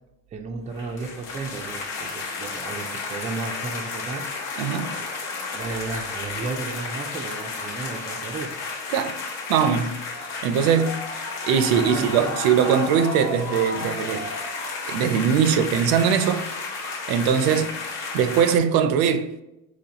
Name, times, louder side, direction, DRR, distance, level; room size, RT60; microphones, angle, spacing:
voice 1, 0.3-5.1 5.5-8.5 11.6-12.3, right 4 dB, 20° right, 0.4 m, -34 dB
sound 1, 0.7-18.6, left 4 dB, 55° left, 1.0 m, -32 dB
voice 2, 4.6-4.9 8.9-9.2 9.5-10.0 10.4-11.0 11.5-14.3 14.9-16.5 17.1-17.7 18.1-19.4, right 7 dB, 65° right, 0.5 m, -21 dB
4.2 x 3.0 x 2.8 m
supercardioid pair, 120°, 39 cm